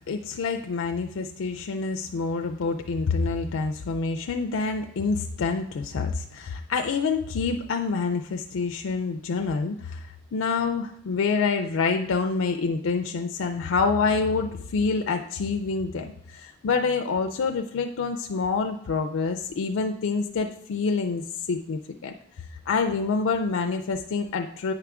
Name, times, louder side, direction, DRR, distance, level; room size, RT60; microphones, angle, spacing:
voice 1, 0.1-22.1 22.7-24.7, left 4 dB, 80° left, 4 dB, 0.4 m, -27 dB
9.1 x 4.8 x 3.5 m, 0.70 s
head